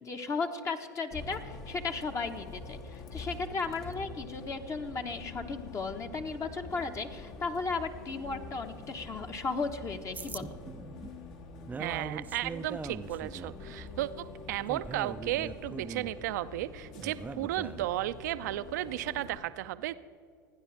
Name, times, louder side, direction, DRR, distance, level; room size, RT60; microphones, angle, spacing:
voice 1, 0.0-10.5, left 4 dB, 30° left, 5 dB, 1.2 m, -35 dB
Bus, 1.1-19.4, left 3 dB, 50° left, 1.8 m, -46 dB
sound 1, 10.1-18.0, right 4 dB, 15° right, 0.5 m, -42 dB
voice 2, 11.8-19.9, right 14 dB, 65° right, 13 dB, 0.6 m, -34 dB
28.5 x 10.0 x 3.4 m, 2.2 s
figure-of-eight pair, 80°, 10 cm